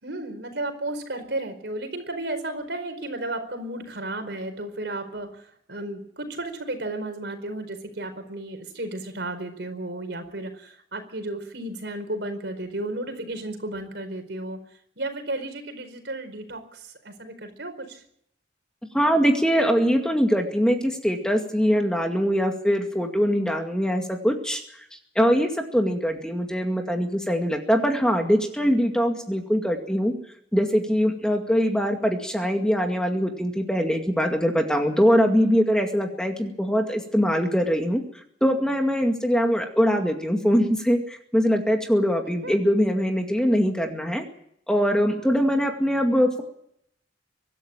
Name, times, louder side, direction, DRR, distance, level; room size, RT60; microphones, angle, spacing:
voice 1, 0.0-14.6 15.0-18.0 42.4-42.6 45.0-45.3, right 2 dB, 65° right, 7 dB, 4.7 m, -33 dB
voice 2, 18.9-24.6 25.2-30.2 30.5-38.0 38.4-44.2 44.7-46.4, equal, 5° left, 3 dB, 2.2 m, -22 dB
24.5 x 13.0 x 9.0 m, 0.70 s
head